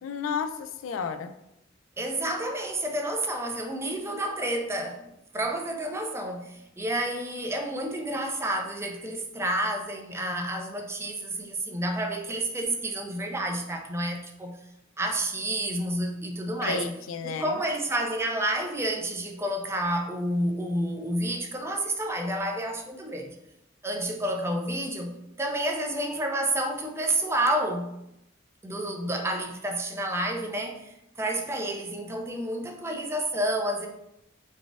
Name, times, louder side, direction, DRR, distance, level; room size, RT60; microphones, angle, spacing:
voice 1, 0.0-1.3 16.6-17.6, left 5 dB, 75° left, 0.3 m, -32 dB
voice 2, 2.0-5.0 5.3-14.6 15.0-16.9 17.2-23.3 23.8-27.9 28.6-33.9, right 1 dB, 15° right, 0.4 m, -30 dB
4.1 x 2.3 x 3.4 m
head